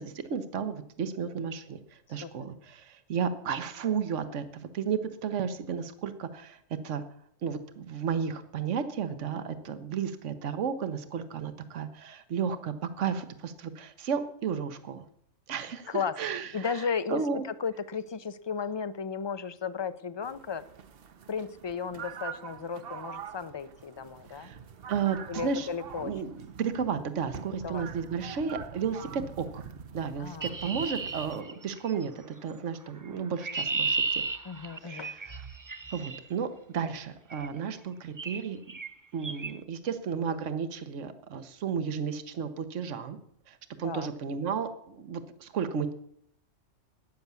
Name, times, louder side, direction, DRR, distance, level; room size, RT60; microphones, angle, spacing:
voice 1, 0.0-6.6 6.8-7.0 7.4-15.0 15.5-17.4 24.3-24.6 24.9-25.7 26.0-29.6 29.9-34.2 34.8-35.4 35.9-38.6 39.1-43.2 43.5-45.9, right 6 dB, 70° right, 10 dB, 1.3 m, -33 dB
voice 2, 15.9-16.2 16.5-17.2 17.6-20.7 21.3-24.5 25.3-26.1 27.6-27.8 30.2-30.5 31.5-31.6 34.4-35.1 43.8-44.1, left 6 dB, 35° left, 14 dB, 0.4 m, -34 dB
sound 1, 20.2-31.4, right 7 dB, 55° right, 0.9 m, -44 dB
Chirp tweet, 30.4-32.0 33.1-36.2 37.3-37.6 38.2-38.4 38.7-38.9 39.2-39.5, right 4 dB, 30° right, 0.3 m, -34 dB
13.0 x 9.4 x 7.0 m, 0.67 s
omnidirectional pair, 1.3 m